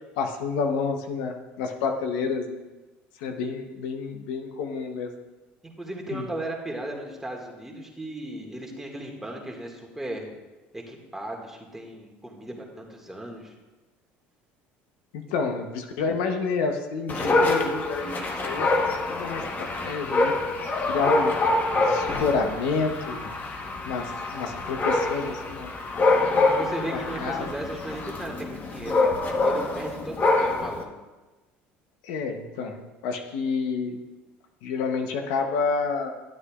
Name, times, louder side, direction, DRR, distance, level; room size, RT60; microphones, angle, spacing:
voice 1, 0.2-2.6 3.2-5.1 6.1-6.3 15.1-20.3 20.8-25.7 26.4-26.5 26.9-27.5 32.0-34.0 34.6-36.1, left 4 dB, 80° left, 5 dB, 0.9 m, -29 dB
voice 2, 5.6-10.3 10.7-13.5 26.2-30.9, right 1 dB, 5° right, 0 dB, 1.9 m, -36 dB
Dog, 17.1-30.8, left 2 dB, 35° left, 1.2 m, -25 dB
12.0 x 8.4 x 2.4 m, 1.1 s
supercardioid pair, 90°, 5 cm